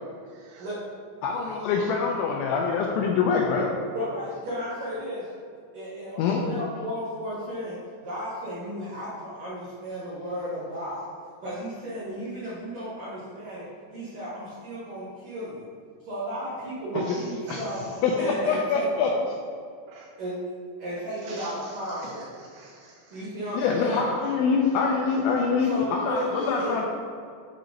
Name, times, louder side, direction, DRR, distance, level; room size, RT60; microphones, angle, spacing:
voice 1, 0.3-0.7 16.9-17.9 19.9-20.1 21.2-23.3 25.6-25.7 26.5-26.7, right 3 dB, 90° right, 1 dB, 2.6 m, -41 dB
voice 2, 1.2-3.7 6.2-6.4 17.5-17.6 18.0-19.1 23.5-26.8, left 5 dB, 85° left, 0 dB, 2.7 m, -24 dB
voice 3, 3.9-5.3 5.7-11.1 11.4-13.7 13.9-15.7 16.0-17.9 18.2-18.9 20.2-20.4 20.8-22.3 23.1-24.1 25.7-26.8, equal, 70° right, -9 dB, 2.0 m, -34 dB
7.6 x 2.9 x 5.1 m, 2.3 s
omnidirectional pair, 5.8 m